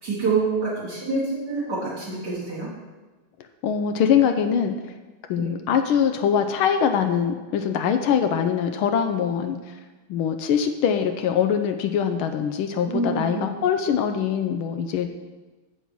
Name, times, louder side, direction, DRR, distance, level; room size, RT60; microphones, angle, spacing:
voice 1, 0.0-2.7 5.4-5.6 12.9-13.5, right 4 dB, 55° right, -7 dB, 2.1 m, -26 dB
voice 2, 3.6-4.9 5.3-9.8 10.1-15.1, left 8 dB, 80° left, 6 dB, 1.4 m, -23 dB
8.2 x 7.4 x 4.6 m, 1.2 s
omnidirectional pair, 2.4 m